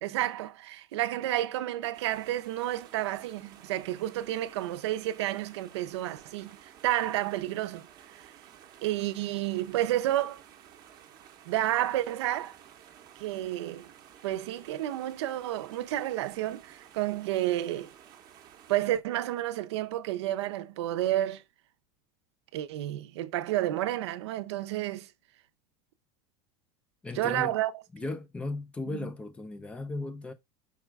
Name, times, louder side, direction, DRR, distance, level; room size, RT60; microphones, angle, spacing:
voice 1, 0.0-7.9 8.2-8.3 8.8-10.4 11.5-12.6 13.2-13.9 14.2-17.9 18.7-21.4 22.5-25.1 27.1-27.7 28.9-29.1, right 14 dB, 85° right, 0.6 m, -30 dB
sound 1, 1.9-18.9, right 9 dB, 30° right, 0.7 m, -54 dB
voice 2, 27.0-27.6 27.9-30.3, left 2 dB, 10° left, 0.3 m, -36 dB
4.8 x 2.4 x 4.5 m
supercardioid pair, 170°, 14 cm